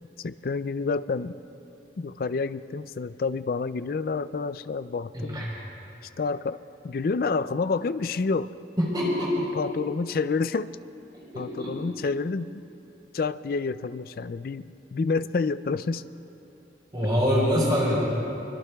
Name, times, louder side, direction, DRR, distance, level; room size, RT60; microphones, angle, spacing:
voice 1, 0.2-1.4 2.0-5.5 6.2-8.5 9.4-10.8 11.4-12.6 13.1-16.0, left 4 dB, 50° left, 14 dB, 0.3 m, -29 dB
voice 2, 5.1-5.5 8.8-9.4 11.1-11.8 16.9-18.0, equal, 25° right, -6 dB, 4.0 m, -25 dB
25.0 x 22.0 x 2.3 m, 3.0 s
head